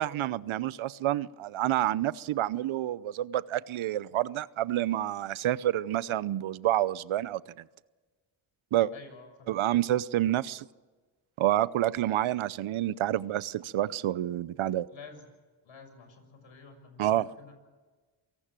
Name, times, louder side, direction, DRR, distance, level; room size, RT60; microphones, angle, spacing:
voice 1, 0.0-7.4 8.7-8.9 9.5-10.7 11.4-14.9 17.0-17.3, right 13 dB, 75° right, 19 dB, 0.8 m, -28 dB
voice 2, 8.9-9.6 14.9-15.3 15.6-17.5, left 4 dB, 70° left, 7 dB, 6.5 m, -50 dB
27.0 x 18.5 x 7.6 m, 1.4 s
cardioid pair, 60°, 49 cm